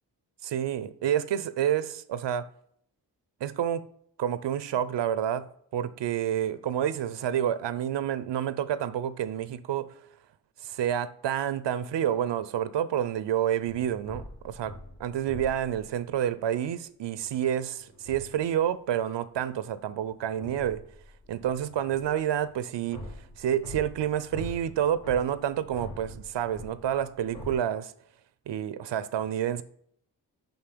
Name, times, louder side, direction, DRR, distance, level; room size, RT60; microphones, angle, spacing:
voice 1, 0.4-2.5 3.4-3.8 4.2-5.5 5.7-9.9 10.6-14.7 15.0-20.8 21.3-23.0 23.4-27.9 28.5-29.6, right 10 dB, 80° right, 0.6 m, -29 dB
sound 1, 13.6-16.1 17.2-17.4 17.8-18.6 19.4-27.5, left 1 dB, 60° left, 2.3 m, -45 dB
5.4 x 5.1 x 5.9 m
cardioid pair, 45°, 42 cm